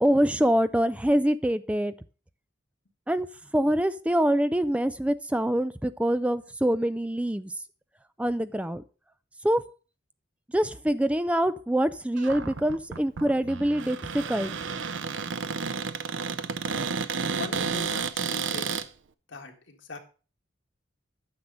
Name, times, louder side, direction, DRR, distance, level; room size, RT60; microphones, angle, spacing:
voice 1, 0.0-1.9 3.1-3.3 3.5-7.5 8.2-8.8 9.4-9.6 10.5-14.5, right 1 dB, 5° right, 13 dB, 0.4 m, -25 dB
Cupboard open or close, 12.2-18.9, right 5 dB, 85° right, 0.6 m, -32 dB
voice 2, 17.3-18.7 19.3-20.0, left 3 dB, 90° left, 4 dB, 1.8 m, -40 dB
9.7 x 6.5 x 5.3 m, 0.36 s
head